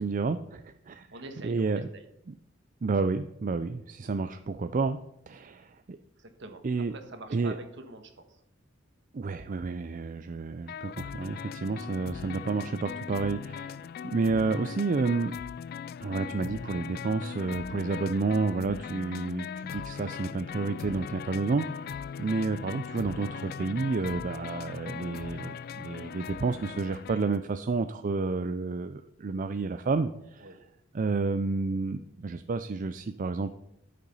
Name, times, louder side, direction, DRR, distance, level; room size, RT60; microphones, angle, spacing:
voice 1, 0.0-1.1 1.4-1.9 2.8-5.0 5.3-6.0 6.6-7.0 7.3-7.6 9.1-15.3 16.0-21.9 22.2-30.5 30.9-33.5, right 4 dB, 40° right, 9 dB, 0.4 m, -30 dB
voice 2, 1.1-2.1 6.2-6.6 6.9-8.4 30.4-30.6, right 2 dB, 65° right, 6 dB, 1.5 m, -45 dB
sound 1, 10.7-27.4, left 7 dB, 50° left, 0.3 m, -39 dB
11.5 x 6.7 x 5.5 m, 0.80 s
head